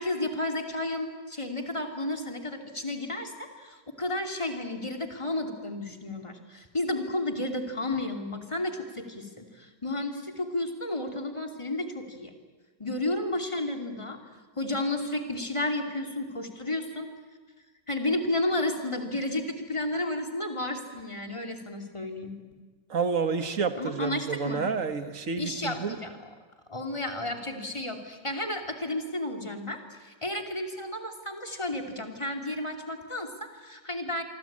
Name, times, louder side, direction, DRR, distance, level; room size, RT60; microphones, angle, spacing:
voice 1, 0.0-12.3 12.8-14.2 14.6-17.1 17.9-22.3 23.8-24.6 25.4-26.1 26.7-34.2, left 1 dB, 15° left, 4 dB, 2.7 m, -32 dB
voice 2, 22.9-26.0, right 5 dB, 50° right, 9 dB, 1.9 m, -29 dB
27.0 x 24.0 x 8.8 m, 1.3 s
omnidirectional pair, 1.8 m